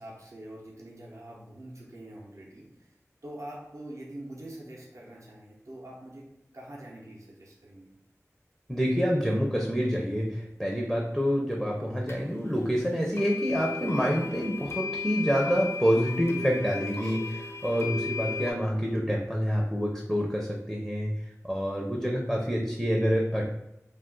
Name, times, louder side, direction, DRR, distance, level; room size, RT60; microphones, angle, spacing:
voice 1, 0.0-2.9 3.2-6.3 6.5-7.9, right 1 dB, 65° right, -4 dB, 0.7 m, -44 dB
voice 2, 8.7-21.1 21.4-23.5, equal, ahead, -1 dB, 0.5 m, -27 dB
sound 1, 12.1-12.2 13.1-18.5, left 4 dB, 50° left, 0.5 m, -35 dB
2.4 x 2.4 x 3.7 m, 0.86 s
wide cardioid pair, 45°, 6 cm